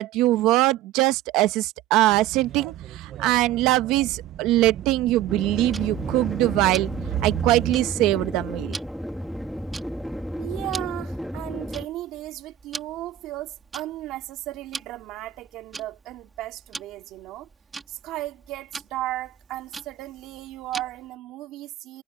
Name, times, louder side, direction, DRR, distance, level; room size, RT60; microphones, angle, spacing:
voice 1, 0.0-6.9 7.2-8.8, right 16 dB, 90° right, 1.0 m, -22 dB
sound 1, 2.1-7.7, right 12 dB, 50° right, 0.7 m, -34 dB
sound 2, 5.3-11.9, equal, ahead, 1.6 m, -33 dB
Tick-tock, 5.7-21.1, right 4 dB, 20° right, 2.6 m, -43 dB
voice 2, 10.4-17.5 17.9-22.0, right 15 dB, 75° right, 2.8 m, -35 dB
cardioid pair, 165°, 0 cm